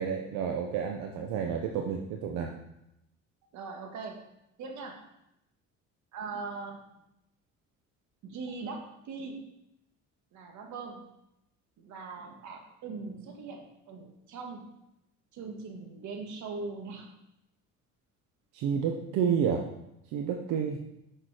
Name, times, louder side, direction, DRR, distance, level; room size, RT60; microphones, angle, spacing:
voice 1, 0.0-2.5 18.5-19.6 20.1-20.8, right 7 dB, 90° right, 3 dB, 0.8 m, -30 dB
voice 2, 3.5-4.3 4.6-5.1 6.1-6.9 8.2-9.5 10.3-11.0 11.8-14.7 15.3-17.1, right 4 dB, 65° right, 3 dB, 1.6 m, -40 dB
6.6 x 6.0 x 4.9 m, 0.85 s
cardioid pair, 130°, 31 cm